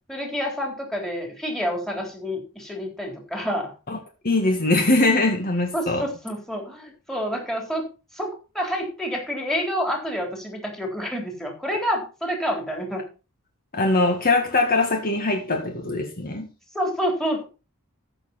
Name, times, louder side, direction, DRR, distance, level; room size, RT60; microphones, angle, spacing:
voice 1, 0.1-3.7 5.7-7.9 8.1-13.1 16.7-17.4, equal, ahead, 3.7 m, -28 dB
voice 2, 4.2-6.1 13.7-16.5, left 2 dB, 40° left, 1.8 m, -22 dB
14.0 x 6.8 x 4.3 m
head